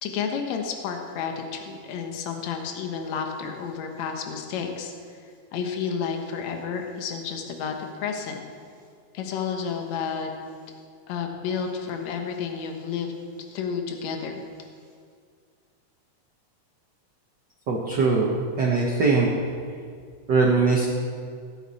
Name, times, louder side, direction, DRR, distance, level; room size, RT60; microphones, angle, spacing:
voice 1, 0.0-4.9 5.5-8.4 9.1-10.3 11.1-13.1 13.5-14.4, left 6 dB, 65° left, 4 dB, 2.2 m, -31 dB
voice 2, 17.7-19.3 20.3-20.9, right 4 dB, 75° right, -2 dB, 1.0 m, -21 dB
16.5 x 8.8 x 4.1 m, 2.1 s
omnidirectional pair, 3.7 m